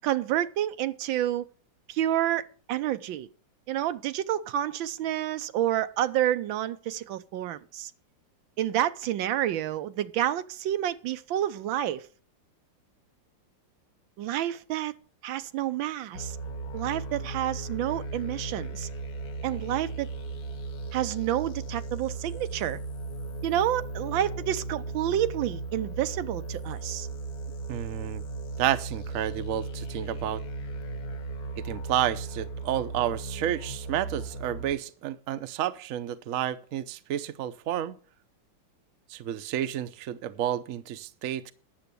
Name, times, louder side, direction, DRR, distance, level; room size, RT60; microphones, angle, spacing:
voice 1, 0.0-1.4 1.9-3.3 3.7-7.9 8.6-12.0 14.2-14.9 15.2-16.4 16.7-18.9 19.4-20.1 20.9-22.8 23.4-27.1, right 12 dB, 90° right, 1.5 m, -29 dB
sound 1, 16.1-34.7, right 3 dB, 55° left, 1.5 m, -36 dB
voice 2, 27.7-28.2 28.6-30.4 31.6-38.0 39.1-41.5, right 11 dB, 60° right, 0.9 m, -30 dB
10.0 x 7.2 x 6.8 m
omnidirectional pair, 2.1 m